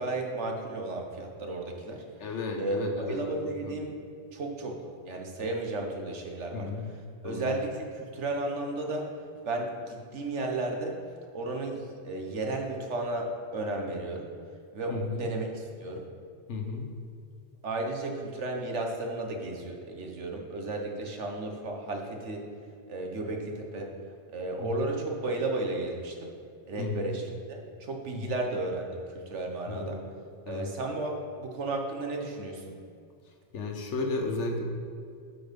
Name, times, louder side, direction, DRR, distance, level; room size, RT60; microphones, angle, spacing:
voice 1, 0.0-2.0 2.6-3.9 4.3-4.8 5.1-6.7 7.2-9.1 9.4-11.0 11.3-14.3 14.7-16.1 17.6-22.5 22.9-23.9 24.3-26.3 26.7-27.2 27.5-30.0 30.5-32.8, right 2 dB, 80° right, 2 dB, 1.5 m, -33 dB
voice 2, 2.2-3.7 6.5-6.9 7.2-7.5 14.9-15.3 16.5-16.9 24.6-24.9 26.8-27.1 28.1-28.3 29.7-30.0 30.5-30.7 33.5-34.6, left 3 dB, 80° left, 3 dB, 1.3 m, -34 dB
12.0 x 4.8 x 5.2 m, 2.4 s
omnidirectional pair, 1.2 m